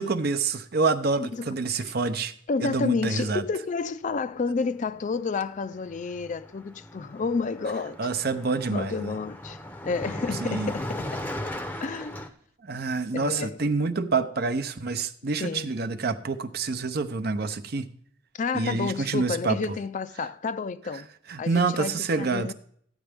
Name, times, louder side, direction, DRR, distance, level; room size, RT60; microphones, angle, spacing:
voice 1, 0.0-2.3 2.6-3.4 8.0-9.1 10.4-10.7 12.6-17.9 18.5-19.6 21.3-22.5, right 4 dB, 55° right, 0.7 m, -27 dB
voice 2, 1.2-1.8 2.5-8.1 8.6-11.2 11.8-12.2 13.1-13.6 15.4-15.8 18.4-21.1 21.4-22.5, left 4 dB, 40° left, 0.4 m, -30 dB
Car passing by, 4.8-5.0 5.3-12.3, left 1 dB, 10° left, 0.7 m, -37 dB
13.5 x 8.8 x 3.5 m
head